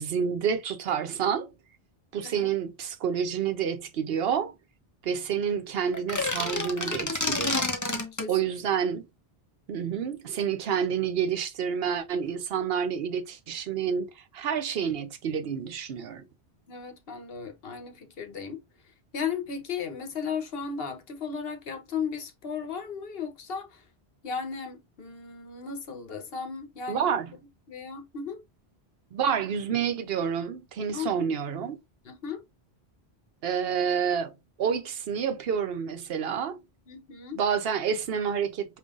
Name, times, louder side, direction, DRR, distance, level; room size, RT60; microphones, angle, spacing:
voice 1, 0.0-1.5 2.1-4.5 5.0-7.7 8.3-9.0 9.7-16.2 26.9-27.3 29.1-31.8 33.4-34.3 34.6-36.6 37.4-38.8, right 7 dB, 70° right, 0.9 m, -29 dB
sound 1, 5.9-8.3, left 2 dB, 20° left, 0.6 m, -29 dB
voice 2, 7.8-8.3 16.7-18.6 19.1-23.8 24.2-27.0 27.7-28.4 30.9-31.3 32.0-32.4 36.9-37.4, left 6 dB, 65° left, 1.1 m, -35 dB
5.3 x 2.6 x 2.4 m
omnidirectional pair, 1.1 m